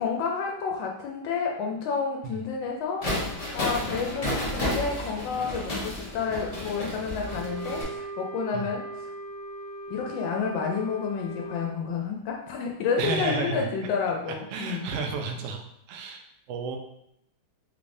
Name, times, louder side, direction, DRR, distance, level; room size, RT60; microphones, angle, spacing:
voice 1, 0.0-3.1 3.5-8.8 9.9-14.8, left 5 dB, 90° left, 0 dB, 1.3 m, -30 dB
sound 1, 3.0-7.8, left 1 dB, 50° left, 0.4 m, -31 dB
Wind instrument woodwind instrument, 7.2-11.7, right 2 dB, 60° right, 1.2 m, -39 dB
voice 2, 13.0-13.7 14.3-15.6 15.9-16.8, right 4 dB, 80° right, 3 dB, 0.7 m, -32 dB
3.5 x 3.2 x 2.6 m, 0.76 s
omnidirectional pair, 2.0 m